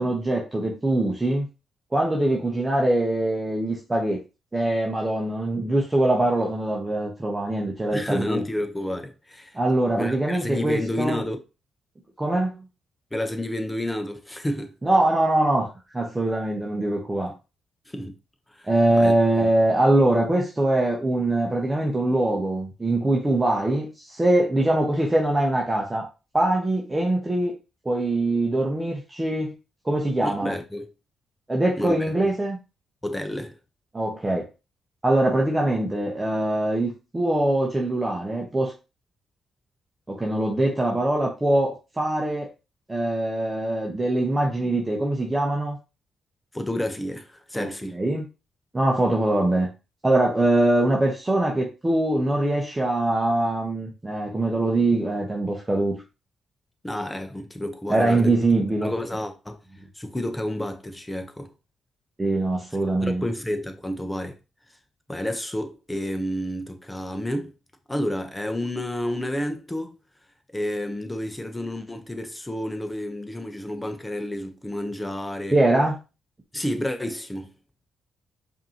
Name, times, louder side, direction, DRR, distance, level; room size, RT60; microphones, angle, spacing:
voice 1, 0.0-1.5 1.9-4.2 4.5-8.4 9.5-11.2 12.2-12.5 14.8-15.7 15.9-17.3 18.7-26.0 26.3-27.5 27.8-29.5 29.8-30.5 31.5-32.6 33.9-34.5 35.0-38.7 40.1-42.5 42.9-45.8 47.5-47.7 47.9-48.3 48.7-49.7 50.0-55.9 57.9-58.9 62.2-63.2 75.5-76.0, right 1 dB, 25° right, 1.0 m, -23 dB
voice 2, 7.9-9.6 10.0-11.4 13.1-14.7 17.9-18.2 18.5-18.7 19.0-19.5 30.2-30.9 31.8-31.9 33.0-33.6 46.5-48.0 56.8-59.6 59.9-61.5 63.0-64.4 65.1-67.5 67.9-70.0 70.5-75.6 76.5-77.5, left 1 dB, 15° left, 0.9 m, -30 dB
5.0 x 2.8 x 2.9 m
hypercardioid pair, 45°, 0 cm